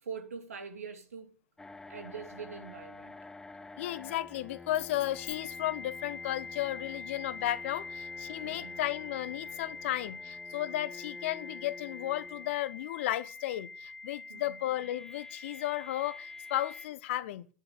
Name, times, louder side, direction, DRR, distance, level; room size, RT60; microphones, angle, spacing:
voice 1, 0.0-1.3 1.9-3.2 8.3-8.8 14.3-14.6, right 6 dB, 70° right, 2.7 m, -43 dB
sound 1, 1.6-16.9, left 3 dB, 5° left, 0.6 m, -45 dB
voice 2, 3.8-17.5, left 14 dB, 55° left, 1.0 m, -34 dB
11.0 x 11.0 x 8.4 m
figure-of-eight pair, 95°, 8 cm